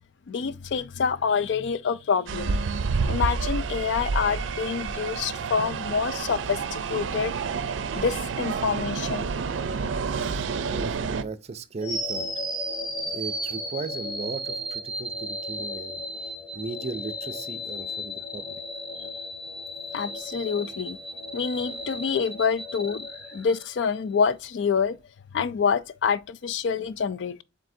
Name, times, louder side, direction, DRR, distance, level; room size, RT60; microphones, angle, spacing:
voice 1, 0.3-2.6 3.1-7.3 7.9-9.3 19.9-21.0 21.3-25.0 25.3-27.4, left 6 dB, 70° left, 0.4 m, -27 dB
sound 1, 2.3-11.2, right 5 dB, 90° right, 0.4 m, -29 dB
voice 2, 10.6-12.3 13.0-16.0 16.5-18.6, right 3 dB, 35° right, 0.4 m, -36 dB
sound 2, 11.8-23.9, equal, 5° right, 0.7 m, -34 dB
7.5 x 2.7 x 2.6 m
head